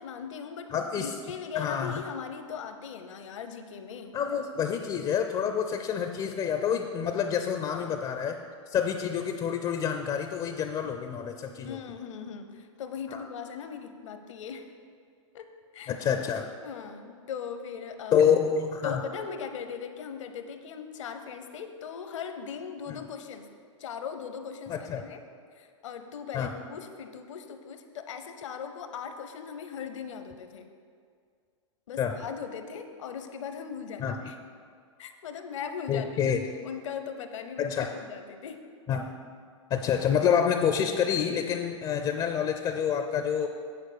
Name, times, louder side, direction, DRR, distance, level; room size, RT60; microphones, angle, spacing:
voice 1, 0.0-4.1 7.6-8.0 11.6-14.7 15.3-15.5 15.7-16.0 16.6-18.2 18.8-23.5 23.8-25.2 25.5-30.7 31.9-34.4 35.0-36.1 36.6-38.7, left 7 dB, 70° left, 8 dB, 0.9 m, -39 dB
voice 2, 0.7-1.1 1.6-2.0 4.1-8.4 8.7-11.8 13.1-13.2 15.9-16.4 18.1-19.0 22.9-23.0 24.7-25.0 26.3-26.5 32.0-32.1 34.0-34.2 35.9-36.4 37.6-37.9 38.9-39.1 39.7-43.5, left 8 dB, 25° left, 6 dB, 0.5 m, -27 dB
9.1 x 4.5 x 6.8 m, 2.2 s
hypercardioid pair, 115°, 17 cm